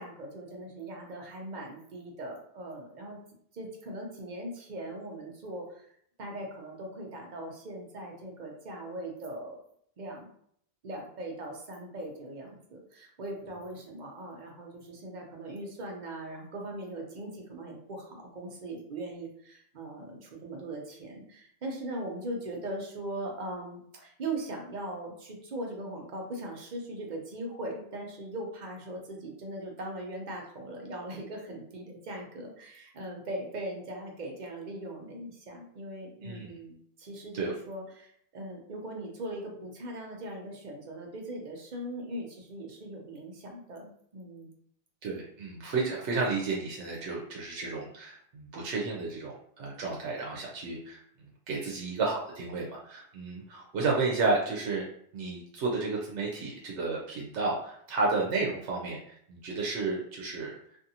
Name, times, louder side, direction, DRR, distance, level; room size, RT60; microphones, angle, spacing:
voice 1, 0.0-3.2 3.5-5.9 6.2-9.6 10.0-10.3 10.8-44.5, right 1 dB, 50° right, 1 dB, 0.7 m, -40 dB
voice 2, 36.2-36.5 37.3-37.5 45.0-51.0 51.5-54.9 55.1-60.5, right 3 dB, 90° right, -2 dB, 0.9 m, -32 dB
2.6 x 2.5 x 2.7 m, 0.66 s
omnidirectional pair, 1.1 m